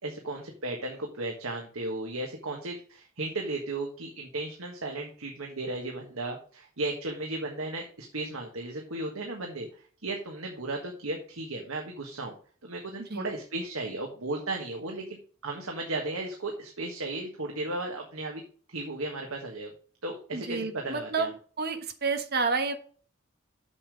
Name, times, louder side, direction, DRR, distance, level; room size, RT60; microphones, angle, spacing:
voice 1, 0.0-12.3 12.6-15.2 15.4-18.4 18.7-19.7 20.0-21.3, right 2 dB, 85° right, 1 dB, 1.6 m, -35 dB
voice 2, 20.3-21.3 21.6-22.8, right 4 dB, 50° right, 7 dB, 1.2 m, -29 dB
7.1 x 6.8 x 5.2 m, 0.42 s
head